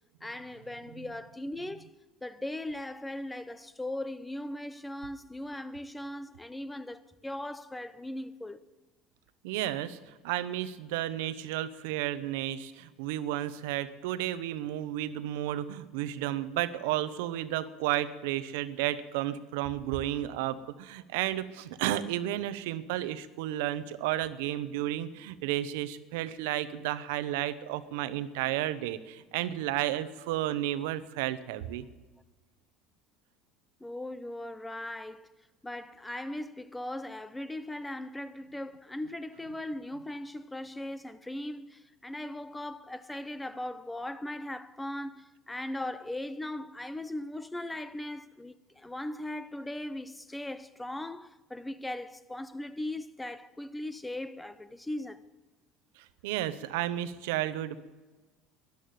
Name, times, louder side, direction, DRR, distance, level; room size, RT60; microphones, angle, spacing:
voice 1, 0.2-1.9 2.2-8.6 33.8-55.2, left 1 dB, 10° left, 0.6 m, -39 dB
voice 2, 9.4-31.8 56.0-57.8, right 13 dB, 85° right, 0.9 m, -32 dB
13.5 x 11.0 x 9.3 m
supercardioid pair, 120°, 0 cm